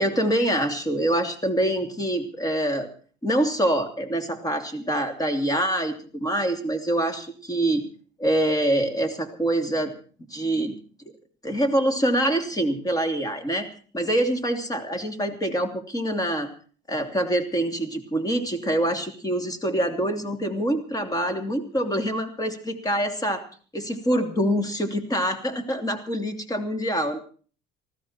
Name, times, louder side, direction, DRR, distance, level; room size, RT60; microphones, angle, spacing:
voice 1, 0.0-2.9 3.2-7.8 8.2-9.9 10.3-10.7 11.4-13.7 13.9-16.5 16.9-23.4 23.7-27.2, right 1 dB, 20° left, 7 dB, 3.0 m, -25 dB
19.5 x 16.0 x 4.4 m, 0.42 s
cardioid pair, 115°, 20 cm